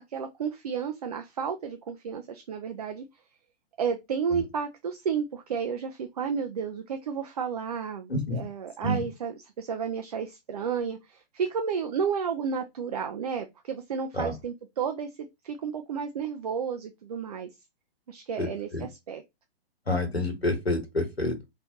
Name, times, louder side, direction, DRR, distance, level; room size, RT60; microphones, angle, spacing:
voice 1, 0.1-3.0 3.8-15.1 15.4-17.5 18.1-19.2, right 6 dB, 40° right, 0.4 m, -32 dB
voice 2, 18.4-18.8 19.9-21.3, left 2 dB, 85° left, 1.2 m, -28 dB
3.6 x 2.5 x 2.9 m
figure-of-eight pair, 120°, 31 cm